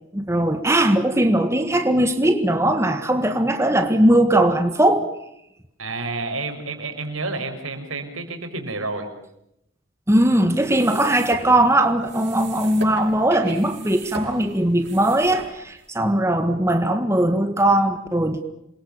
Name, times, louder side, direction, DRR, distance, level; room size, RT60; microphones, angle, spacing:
voice 1, 0.1-5.1 10.1-18.4, right 1 dB, 15° right, 7 dB, 1.7 m, -19 dB
voice 2, 5.8-9.1, right 3 dB, 80° right, 6 dB, 5.9 m, -29 dB
sound 1, 10.5-15.9, right 3 dB, 55° right, 7.4 m, -38 dB
28.0 x 23.0 x 7.0 m, 0.81 s
head